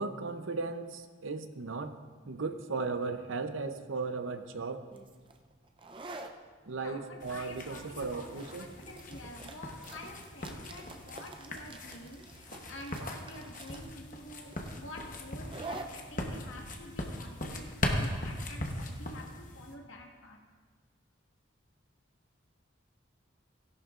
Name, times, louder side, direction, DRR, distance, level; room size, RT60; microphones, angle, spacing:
voice 1, 0.0-1.9 2.3-4.8 6.7-8.7, right 4 dB, 85° right, 8 dB, 0.7 m, -36 dB
sound 1, 4.9-18.3, right 2 dB, 25° right, 0.5 m, -49 dB
voice 2, 6.7-20.4, left 1 dB, 85° left, 1 dB, 1.5 m, -48 dB
sound 2, 7.2-19.7, left 1 dB, 40° left, 1.0 m, -39 dB
16.5 x 11.0 x 2.5 m, 1.5 s
head